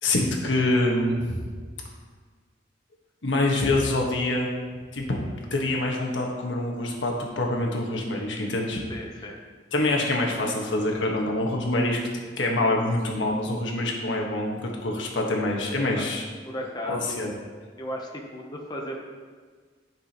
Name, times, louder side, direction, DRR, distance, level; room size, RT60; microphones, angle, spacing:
voice 1, 0.0-1.4 3.2-4.5 4.9-5.2 5.5-8.9 9.7-12.0 12.4-16.2 16.9-17.3, left 2 dB, 80° left, 0 dB, 1.4 m, -25 dB
voice 2, 8.9-9.4 15.9-16.1 16.5-17.2 17.8-19.0, left 1 dB, 20° left, 0 dB, 0.7 m, -35 dB
11.5 x 6.1 x 3.0 m, 1.5 s
head